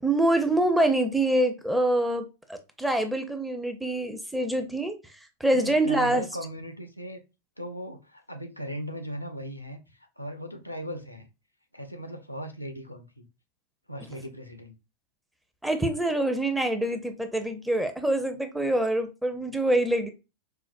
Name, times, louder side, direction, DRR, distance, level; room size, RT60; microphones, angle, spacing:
voice 1, 0.0-6.2 15.6-20.1, right 1 dB, 5° right, 0.5 m, -25 dB
voice 2, 5.5-7.2 7.6-9.8 10.2-11.3 11.7-13.3 13.9-14.7, equal, 85° left, 0.5 m, -37 dB
4.4 x 2.0 x 2.5 m
figure-of-eight pair, 90°, 0 cm